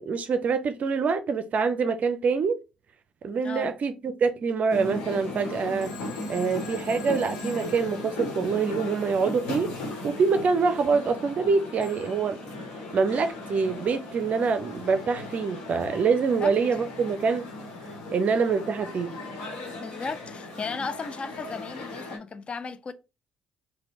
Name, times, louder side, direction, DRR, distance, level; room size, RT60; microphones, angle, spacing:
voice 1, 0.0-2.6 3.2-5.9 6.3-9.7 10.0-12.4 12.9-17.5 18.1-19.2, right 5 dB, 45° right, 0.4 m, -25 dB
voice 2, 3.4-3.8 16.4-16.5 19.8-22.9, left 4 dB, 35° left, 0.4 m, -35 dB
sound 1, 4.7-22.2, left 2 dB, 70° left, 1.1 m, -37 dB
Telephone, 5.8-8.8 11.8-12.3, left 6 dB, 85° left, 0.5 m, -47 dB
4.1 x 2.2 x 2.9 m
figure-of-eight pair, 45°, 3 cm